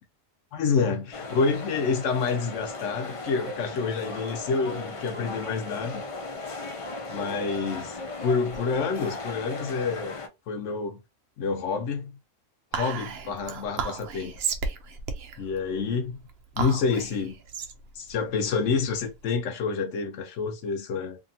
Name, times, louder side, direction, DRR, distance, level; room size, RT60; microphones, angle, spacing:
voice 1, 0.5-6.0 7.1-10.2 10.5-11.0 11.4-12.1 12.7-14.4 15.4-16.2 16.6-17.4 18.0-21.2, left 5 dB, 80° left, 1.0 m, -28 dB
sound 1, 1.1-10.3, left 2 dB, 40° left, 0.5 m, -37 dB
Whispering, 12.7-19.4, right 5 dB, 65° right, 0.8 m, -34 dB
2.6 x 2.6 x 2.7 m
omnidirectional pair, 1.2 m